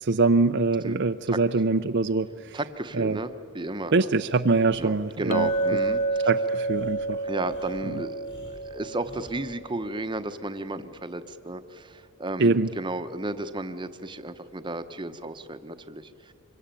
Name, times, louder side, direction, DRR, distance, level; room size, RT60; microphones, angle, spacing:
voice 1, 0.0-2.6 2.9-3.2 3.9-5.5 6.3-7.2 7.9-8.0 12.4-12.7, right 3 dB, 50° right, 9 dB, 0.6 m, -23 dB
voice 2, 0.8-1.4 2.5-4.1 4.8-6.3 7.2-16.3, right 2 dB, 20° right, 10 dB, 0.9 m, -34 dB
Breathing, 4.7-9.4, equal, 50° left, 5.6 m, -51 dB
Chink clink, 5.3-9.5, right 3 dB, 30° left, 0.7 m, -28 dB
26.0 x 23.0 x 9.0 m, 2.4 s
head